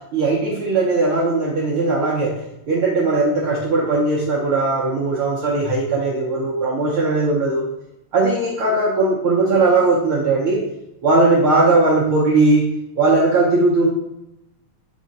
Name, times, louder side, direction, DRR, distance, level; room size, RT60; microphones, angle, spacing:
voice 1, 0.1-2.3 2.7-7.6 8.1-10.6 11.0-12.7 13.0-13.9, right 2 dB, 85° right, -5 dB, 1.2 m, -18 dB
6.5 x 3.8 x 5.3 m, 0.86 s
omnidirectional pair, 3.9 m